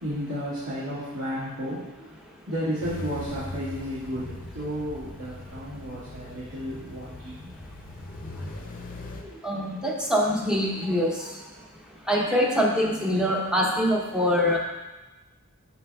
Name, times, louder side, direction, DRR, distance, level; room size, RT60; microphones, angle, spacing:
voice 1, 0.0-1.8 2.5-7.5, equal, 70° right, -12 dB, 2.0 m, -33 dB
sound 1, 2.8-9.2, left 2 dB, 40° left, 0.6 m, -40 dB
voice 2, 9.4-11.1 12.1-14.6, equal, 5° right, -2 dB, 0.8 m, -24 dB
11.5 x 4.2 x 2.3 m, 1.2 s
head